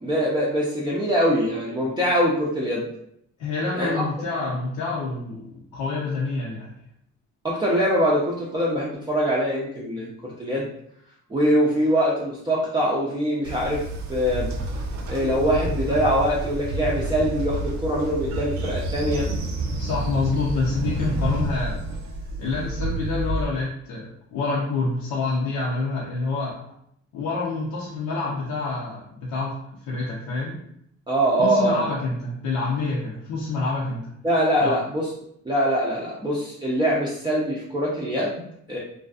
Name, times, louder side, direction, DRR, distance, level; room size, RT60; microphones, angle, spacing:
voice 1, 0.0-2.9 3.7-4.0 7.4-10.7 11.3-14.5 15.1-19.3 31.1-31.9 34.2-35.1 35.4-38.8, equal, 15° right, -6 dB, 0.5 m, -23 dB
voice 2, 3.4-6.7 19.8-21.8 22.4-26.6 27.1-29.6 29.8-30.6 31.4-34.1 34.6-34.8, left 3 dB, 85° left, -5 dB, 0.6 m, -27 dB
Train, 13.4-23.4, right 1 dB, 65° right, 0.5 m, -29 dB
2.5 x 2.3 x 2.4 m, 0.72 s
cardioid pair, 90°, 30 cm